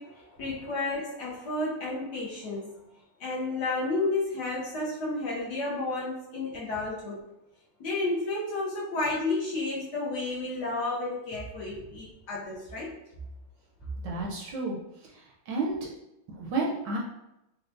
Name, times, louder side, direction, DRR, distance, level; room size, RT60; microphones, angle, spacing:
voice 1, 0.0-2.8 3.2-7.2 7.8-12.9, left 2 dB, 70° left, -5 dB, 1.0 m, -31 dB
voice 2, 14.0-14.8 15.5-15.8 16.4-17.0, right 3 dB, 70° right, -2 dB, 1.1 m, -30 dB
4.2 x 2.2 x 2.5 m, 0.88 s
omnidirectional pair, 2.2 m